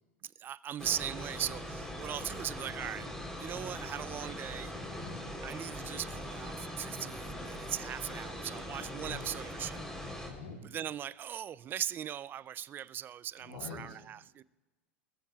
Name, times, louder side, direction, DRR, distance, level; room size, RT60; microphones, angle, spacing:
voice 1, 0.2-3.1 3.4-4.8 5.4-9.9 10.6-14.4, right 10 dB, 30° right, 0.4 m, -39 dB
sound 1, 0.8-10.3, left 1 dB, 10° left, 3.6 m, -41 dB
voice 2, 4.9-5.2 9.0-9.3 10.3-10.6 13.4-14.0, left 5 dB, 70° left, 3.7 m, -45 dB
25.5 x 14.5 x 2.4 m
hypercardioid pair, 95°, 7 cm